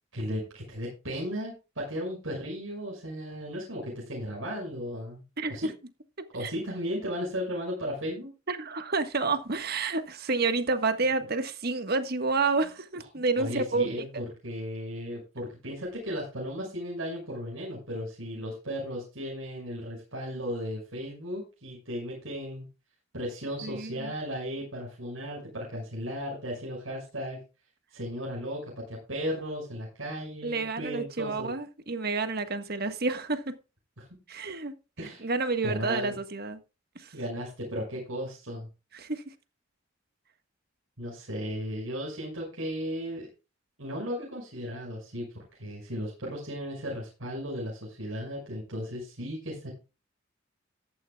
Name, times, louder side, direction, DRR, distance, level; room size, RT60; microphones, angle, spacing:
voice 1, 0.1-5.7 6.3-8.3 13.2-22.7 23.1-27.4 27.9-31.5 34.0-34.1 35.0-35.2 35.6-36.2 37.1-38.7 41.0-43.3 43.8-49.7, equal, 80° right, 6.2 m, -35 dB
voice 2, 5.4-5.7 6.4-6.5 8.5-13.9 14.1-14.2 23.6-24.1 30.4-33.5 34.3-34.7 35.2-36.6 36.9-37.1 38.9-39.3, right 3 dB, 50° right, 1.6 m, -29 dB
14.0 x 12.5 x 2.4 m
head